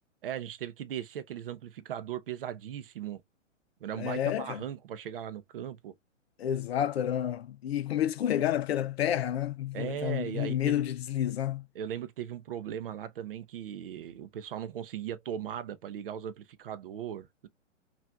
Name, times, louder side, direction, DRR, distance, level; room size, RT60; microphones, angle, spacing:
voice 1, 0.2-3.2 3.8-5.9 9.7-10.9 11.7-17.5, right 10 dB, 45° right, 0.5 m, -38 dB
voice 2, 4.0-4.6 6.4-11.7, left 11 dB, 55° left, 0.6 m, -30 dB
5.5 x 2.5 x 2.4 m
hypercardioid pair, 140°, 38 cm